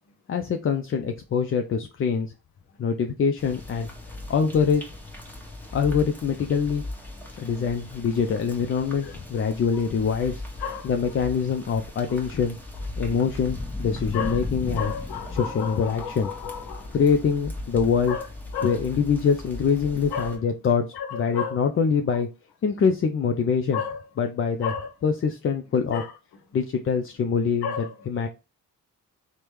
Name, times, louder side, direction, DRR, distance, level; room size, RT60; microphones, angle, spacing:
voice 1, 0.3-2.3 2.8-3.9 4.3-4.8 5.7-6.8 7.4-10.4 10.8-12.6 13.0-14.9 15.3-16.3 16.9-18.2 18.6-22.3 22.6-23.8 24.2-24.7 25.0-26.0 26.5-28.3, left 6 dB, 35° left, 0.4 m, -24 dB
sound 1, 3.4-20.4, left 2 dB, 5° left, 0.9 m, -37 dB
voice 2, 14.8-16.8 18.1-18.2 18.5-18.7 20.1-20.3 21.3-21.5 23.7-24.0 24.6-24.8 25.9-26.0 27.6-27.8, left 7 dB, 70° left, 0.8 m, -31 dB
3.2 x 2.1 x 3.0 m
supercardioid pair, 55°, 41 cm